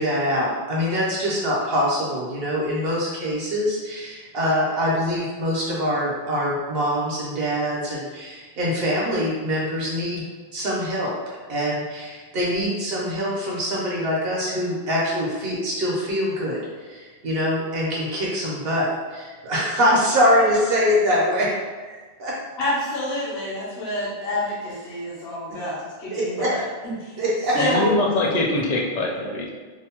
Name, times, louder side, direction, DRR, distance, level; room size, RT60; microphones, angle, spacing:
voice 1, 0.0-10.2 10.5-11.1 11.5-21.5 21.8-22.3 25.5-25.6 26.1-26.5 27.2-27.6, equal, 70° right, -5 dB, 1.0 m, -24 dB
voice 2, 22.6-27.1 27.5-27.9, left 1 dB, 80° left, -6 dB, 0.9 m, -28 dB
voice 3, 27.5-29.5, left 2 dB, 55° left, -2 dB, 0.5 m, -23 dB
2.7 x 2.1 x 2.8 m, 1.4 s
omnidirectional pair, 1.0 m